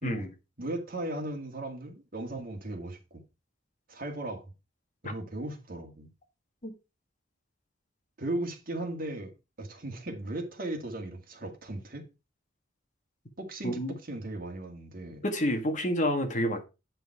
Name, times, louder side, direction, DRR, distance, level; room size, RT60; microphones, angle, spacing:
voice 1, 0.6-3.2 3.9-4.5 5.0-6.1 8.2-9.3 9.6-12.1 13.4-15.2, right 1 dB, 50° right, 2.0 m, -37 dB
voice 2, 13.6-13.9 15.2-16.6, equal, 40° left, 1.7 m, -29 dB
9.3 x 5.5 x 4.7 m
head